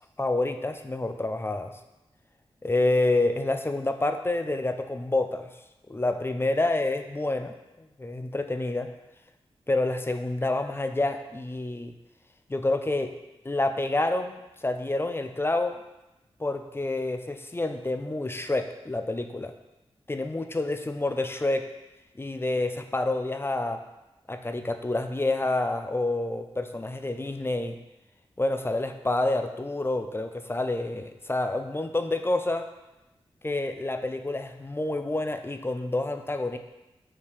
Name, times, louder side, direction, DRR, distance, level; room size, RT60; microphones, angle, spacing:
voice 1, 0.2-1.7 2.6-5.5 5.9-7.5 8.0-8.9 9.7-11.9 12.5-13.1 13.4-15.8 16.4-19.5 20.1-21.6 22.2-23.8 24.3-27.8 28.4-32.7 33.4-36.6, left 2 dB, 20° left, 7 dB, 0.6 m, -28 dB
5.7 x 4.8 x 4.8 m, 0.97 s
cardioid pair, 65°, 11 cm